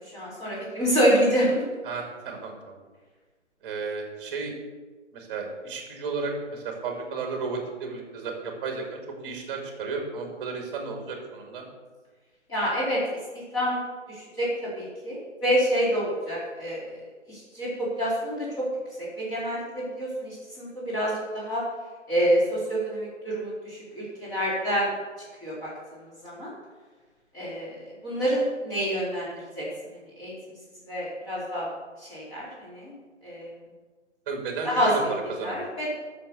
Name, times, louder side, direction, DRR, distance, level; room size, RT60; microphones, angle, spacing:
voice 1, 0.1-1.6 12.5-13.0 13.3-13.8 14.1-17.0 17.3-17.7 17.9-18.7 19.2-21.6 22.1-24.9 25.4-25.7 26.2-26.5 27.3-29.7 30.2-30.3 30.9-31.7 32.0-32.9 33.2-33.5 34.6-34.9 35.4-35.9, equal, 10° left, -8 dB, 4.4 m, -27 dB
voice 2, 1.8-2.8 3.6-4.5 5.1-9.0 9.2-11.6 34.3-35.6, right 4 dB, 20° right, 2 dB, 2.6 m, -33 dB
13.0 x 6.8 x 7.1 m, 1.4 s
hypercardioid pair, 155°, 37 cm